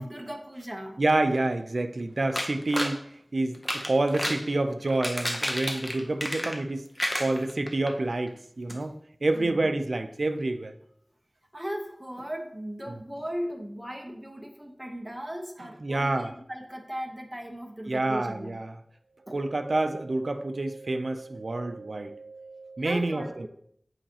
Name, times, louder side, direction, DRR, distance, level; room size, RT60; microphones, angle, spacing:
voice 1, 0.0-1.0 8.7-8.9 9.3-9.7 11.5-18.6 19.3-19.4 22.8-23.5, equal, 15° right, 2 dB, 1.0 m, -37 dB
voice 2, 1.0-3.0 3.3-6.9 7.2-8.9 9.2-10.7 12.9-13.0 15.8-16.3 17.9-18.8 19.3-23.5, right 2 dB, 65° right, 8 dB, 0.5 m, -28 dB
sound 1, 2.3-3.0 3.5-4.4 4.9-6.7 7.0-7.9 8.3-8.4 8.7-8.8, equal, 15° left, 0.9 m, -31 dB
7.8 x 4.9 x 2.9 m, 0.66 s
wide cardioid pair, 60°, 0 cm